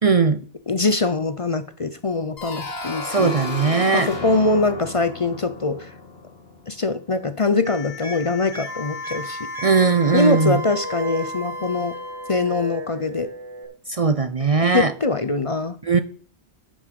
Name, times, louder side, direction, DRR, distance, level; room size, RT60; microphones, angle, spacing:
voice 1, 0.0-0.4 3.1-4.1 9.6-10.6 13.9-14.9 15.8-16.0, right 5 dB, 40° right, 12 dB, 0.6 m, -19 dB
voice 2, 0.7-3.3 3.9-5.9 6.7-9.7 10.1-11.9 12.3-13.3 14.6-15.8, left 3 dB, 35° left, 11 dB, 0.7 m, -23 dB
sound 1, 2.4-7.0, left 3 dB, 75° left, 2.1 m, -33 dB
sound 2, 7.6-13.6, left 2 dB, 20° right, 2.6 m, -36 dB
Wind instrument woodwind instrument, 8.6-12.8, right 1 dB, 80° right, 1.8 m, -35 dB
10.0 x 6.3 x 6.8 m, 0.43 s
omnidirectional pair, 1.0 m